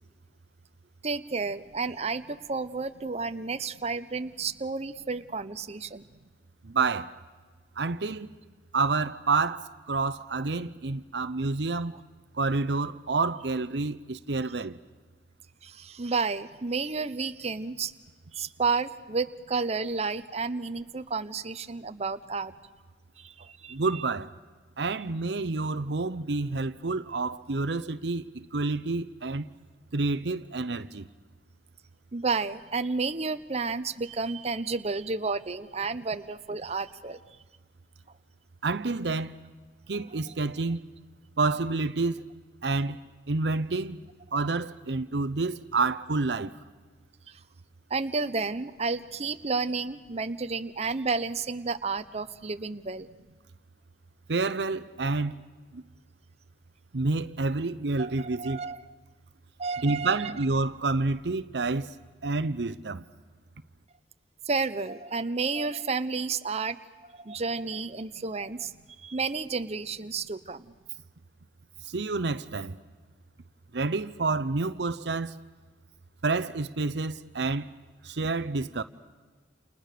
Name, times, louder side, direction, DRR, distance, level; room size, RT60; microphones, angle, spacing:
voice 1, 1.0-6.0 15.6-17.9 18.3-22.5 23.2-24.0 32.1-37.2 40.3-40.4 47.3-47.4 47.9-53.1 58.0-58.8 59.6-60.3 64.4-66.8 67.0-68.7 69.0-70.6, right 4 dB, 35° right, 0.8 m, -31 dB
voice 2, 6.6-7.2 7.8-8.3 8.7-11.9 12.4-14.8 23.7-24.3 24.8-29.4 29.9-31.1 38.6-39.3 39.9-40.8 41.4-42.2 42.6-43.0 43.3-44.0 44.3-46.5 54.3-55.4 55.7-55.8 56.9-58.6 59.8-61.9 62.2-63.0 71.9-72.8 73.7-75.3 76.2-77.7 78.0-78.8, right 3 dB, 70° right, 0.8 m, -28 dB
29.5 x 29.0 x 6.8 m
head